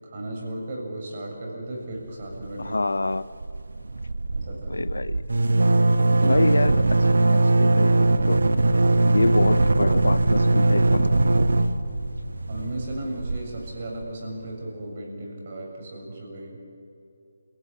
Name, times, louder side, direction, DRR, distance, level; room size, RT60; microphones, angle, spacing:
voice 1, 0.0-2.8 4.3-4.8 6.1-6.5 12.5-16.6, right 1 dB, 35° right, 0 dB, 7.3 m, -35 dB
sound 1, 2.2-2.8 3.0-3.2 3.4-14.1, right 2 dB, 60° right, 1.3 m, -21 dB
voice 2, 2.6-3.3 4.7-5.2 6.2-8.4 9.1-11.1, left 2 dB, 65° left, 17 dB, 0.7 m, -26 dB
28.0 x 17.5 x 9.1 m, 2.5 s
figure-of-eight pair, 150°, 0 cm